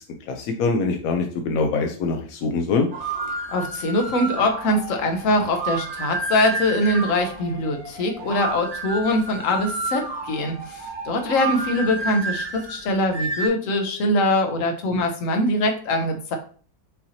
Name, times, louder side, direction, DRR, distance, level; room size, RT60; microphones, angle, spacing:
voice 1, 0.3-2.9, left 4 dB, 80° left, 4 dB, 0.8 m, -23 dB
sound 1, 2.9-13.5, right 3 dB, 55° right, 0.5 m, -31 dB
voice 2, 3.5-16.4, left 1 dB, 60° left, 4 dB, 0.9 m, -23 dB
5.6 x 2.7 x 2.8 m, 0.42 s
omnidirectional pair, 2.1 m